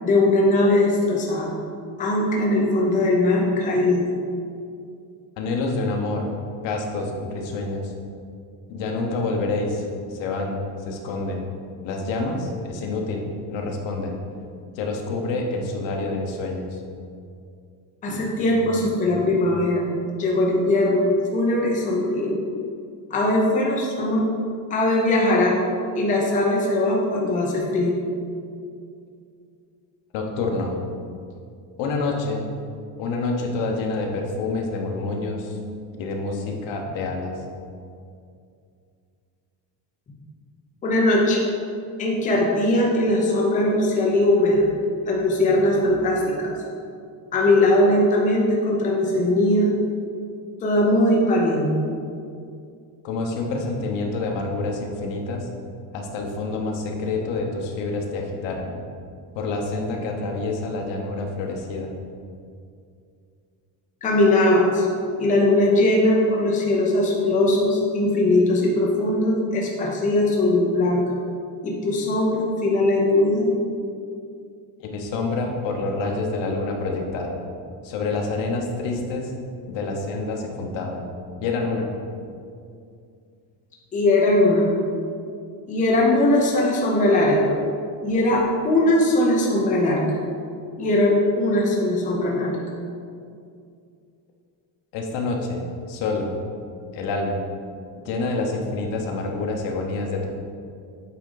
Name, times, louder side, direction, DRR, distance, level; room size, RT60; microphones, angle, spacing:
voice 1, 0.0-1.5 2.0-4.1 18.0-19.9 20.2-22.4 23.1-24.3 24.7-25.6 25.9-28.0 40.8-41.4 42.0-44.7 45.0-46.5 47.3-49.8 50.6-51.7 64.0-64.9 65.2-71.0 71.6-73.5 83.9-84.7 85.7-87.5 88.0-90.0 90.8-92.6, left 1 dB, 15° left, -2 dB, 0.6 m, -20 dB
voice 2, 5.4-6.3 6.6-7.9 8.7-11.5 11.8-14.2 14.7-16.8 30.1-30.8 31.8-32.4 33.0-35.6 36.0-37.3 53.0-55.5 55.9-58.8 59.3-61.9 74.8-77.4 77.8-79.3 79.7-81.1 81.4-81.9 94.9-96.3 96.9-97.4 98.0-100.3, left 3 dB, 70° left, 1 dB, 1.1 m, -27 dB
8.2 x 3.7 x 3.9 m, 2.4 s
cardioid pair, 175°, 46 cm